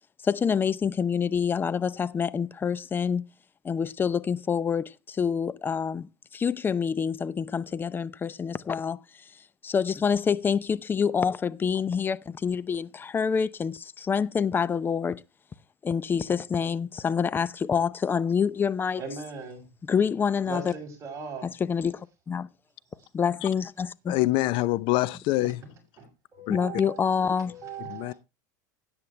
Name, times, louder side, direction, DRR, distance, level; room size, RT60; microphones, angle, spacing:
voice 1, 0.2-3.2 3.6-9.0 9.6-15.2 15.8-19.0 19.9-20.7 21.7-22.5 23.1-24.2 26.5-27.5, left 6 dB, 20° left, 0.6 m, -27 dB
voice 2, 19.0-19.7 20.4-21.5 25.4-25.5 26.0-27.0 27.4-28.2, right 5 dB, 30° right, 6.9 m, -39 dB
voice 3, 24.1-25.6 26.5-26.6 27.9-28.1, left 18 dB, 55° left, 0.7 m, -25 dB
13.0 x 9.7 x 3.3 m
supercardioid pair, 110°, 10 cm